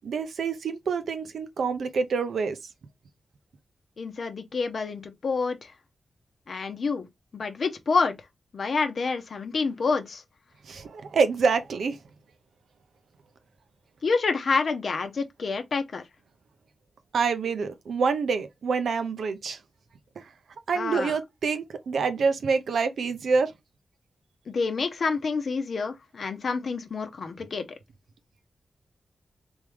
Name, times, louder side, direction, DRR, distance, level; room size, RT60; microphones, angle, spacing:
voice 1, 0.0-2.6 10.6-12.0 17.1-19.6 20.2-20.3 20.7-23.5, right 5 dB, 85° right, 0.6 m, -26 dB
voice 2, 4.0-5.7 6.5-7.1 7.3-8.1 8.5-10.2 14.0-16.0 20.8-21.2 24.5-27.6, left 4 dB, 65° left, 0.7 m, -28 dB
3.6 x 3.5 x 3.1 m
cardioid pair, 75°, 0 cm